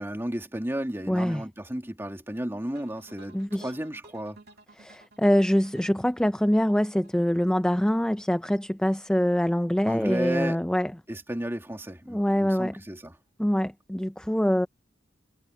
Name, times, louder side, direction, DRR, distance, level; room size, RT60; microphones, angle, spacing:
voice 1, 0.0-4.4 9.8-10.6 11.1-13.1, right 1 dB, 10° right, 2.4 m, -33 dB
voice 2, 1.1-1.4 3.3-3.7 4.8-10.9 12.1-12.7 13.4-14.7, equal, 5° left, 0.4 m, -24 dB
sound 1, 2.7-7.8, right 2 dB, 55° right, 2.9 m, -55 dB
head